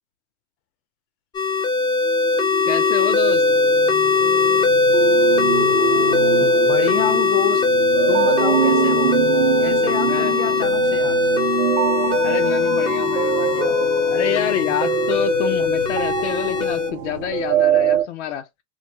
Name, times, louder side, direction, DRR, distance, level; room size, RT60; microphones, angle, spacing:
sound 1, 1.3-16.9, left 4 dB, 15° left, 0.4 m, -19 dB
sound 2, 2.0-18.0, right 9 dB, 75° right, 0.7 m, -24 dB
voice 1, 2.7-3.4 10.0-10.3 12.2-13.8 14.1-18.5, left 10 dB, 85° left, 0.6 m, -27 dB
voice 2, 6.4-7.7 8.1-9.1 9.6-11.3, left 11 dB, 40° left, 0.7 m, -28 dB
2.2 x 2.2 x 2.8 m
hypercardioid pair, 110°, 34 cm